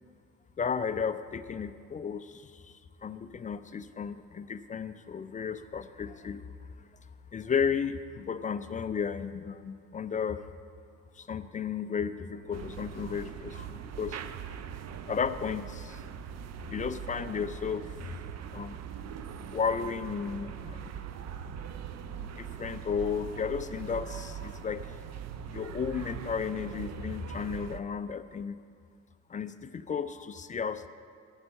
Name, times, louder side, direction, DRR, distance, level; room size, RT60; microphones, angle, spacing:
voice 1, 0.6-6.5 7.3-10.4 11.2-14.2 15.1-16.0 16.7-18.2 18.5-18.8 19.5-21.0 22.0-24.9 25.5-28.6 29.3-30.9, left 6 dB, 20° left, 12 dB, 0.4 m, -34 dB
sound 1, 12.5-27.8, right 8 dB, 40° right, 0.7 m, -41 dB
9.4 x 8.1 x 8.5 m, 2.1 s
figure-of-eight pair, 50°, 43 cm